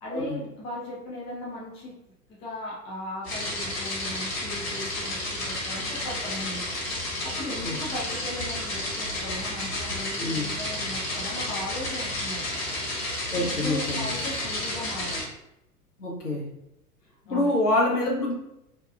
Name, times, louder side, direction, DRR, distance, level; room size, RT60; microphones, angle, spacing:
voice 1, 0.0-2.0 2.3-6.8 7.2-12.6 13.4-15.3 17.3-17.5, left 1 dB, 15° left, -5 dB, 0.4 m, -37 dB
sound 1, 3.2-15.2, left 1 dB, 60° left, 1.3 m, -31 dB
voice 2, 13.3-14.0 16.0-16.4 17.3-18.3, left 1 dB, 85° left, -3 dB, 0.9 m, -26 dB
2.7 x 2.2 x 2.4 m, 0.86 s
figure-of-eight pair, 95°, 45 cm